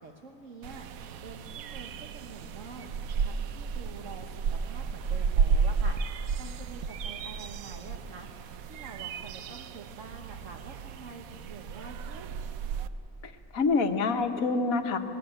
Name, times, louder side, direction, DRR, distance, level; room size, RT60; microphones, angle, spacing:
voice 1, 0.0-0.9 1.2-2.9 3.2-6.0 6.4-8.3 8.6-12.4, right 4 dB, 65° right, 3 dB, 1.5 m, -46 dB
sound 1, 0.6-12.9, right 5 dB, 80° right, 1.1 m, -33 dB
voice 2, 13.2-15.0, left 4 dB, 80° left, 7 dB, 1.6 m, -27 dB
20.0 x 19.5 x 9.0 m, 3.0 s
omnidirectional pair, 1.5 m